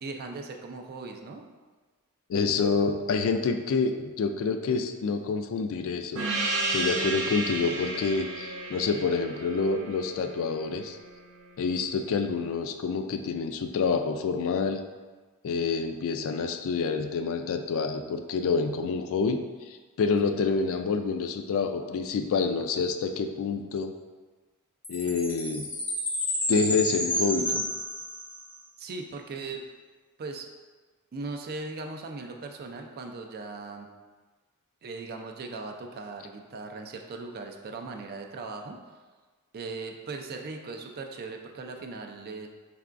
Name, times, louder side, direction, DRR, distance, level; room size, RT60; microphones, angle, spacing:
voice 1, 0.0-1.5 28.8-29.6 30.2-30.5 31.1-33.9 34.8-38.8 39.5-42.5, right 3 dB, 45° right, 3 dB, 0.4 m, -38 dB
voice 2, 2.3-6.2 6.7-11.0 11.6-14.8 15.4-19.4 19.7-23.9 24.9-25.7 26.5-27.6, left 4 dB, 65° left, 7 dB, 0.3 m, -27 dB
Gong, 6.2-11.2, right 2 dB, 70° right, 0.7 m, -32 dB
Chime, 24.8-28.6, left 1 dB, 5° left, 0.6 m, -31 dB
4.5 x 3.4 x 2.4 m, 1.3 s
head